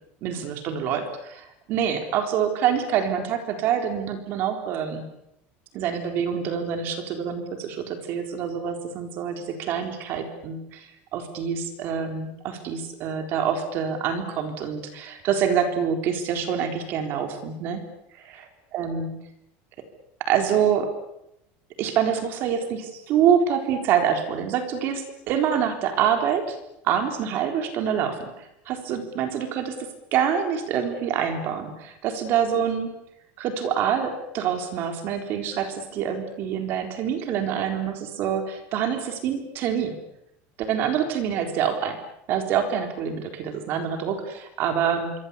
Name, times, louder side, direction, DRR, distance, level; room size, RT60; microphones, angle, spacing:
voice 1, 0.2-5.1 5.7-17.8 18.2-18.5 18.7-19.1 20.2-20.9 21.8-26.6 26.8-29.8 30.1-32.9 33.4-40.0 40.6-42.0 42.3-45.1, right 8 dB, 40° right, 7 dB, 3.9 m, -26 dB
26.0 x 24.0 x 8.4 m, 0.81 s
cardioid pair, 180°, 6 cm